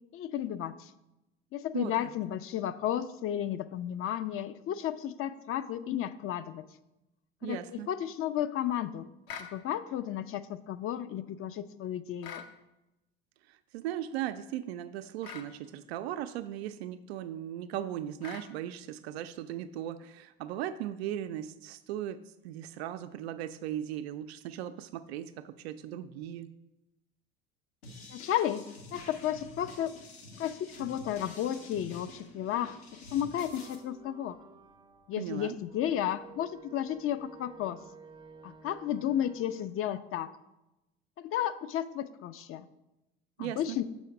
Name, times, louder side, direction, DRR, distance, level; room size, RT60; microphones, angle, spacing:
voice 1, 0.1-0.9 1.5-6.6 7.4-9.1 9.4-12.4 28.1-28.7 28.9-29.9 30.4-32.8 33.1-34.4 35.1-37.8 38.4-40.3 41.2-42.7 43.4-43.8, left 11 dB, 45° left, 12 dB, 0.5 m, -33 dB
voice 2, 7.4-7.9 13.5-26.5 35.2-35.6 43.4-43.8, right 11 dB, 75° right, 9 dB, 0.5 m, -38 dB
sound 1, 9.3-9.6 12.2-12.5 15.2-15.5 18.2-18.5, left 7 dB, 65° left, 0.9 m, -43 dB
sound 2, 27.8-33.7, left 2 dB, 85° left, 1.5 m, -49 dB
sound 3, 33.4-39.7, right 4 dB, 15° right, 0.5 m, -53 dB
6.3 x 4.2 x 5.7 m, 0.94 s
hypercardioid pair, 70°, 31 cm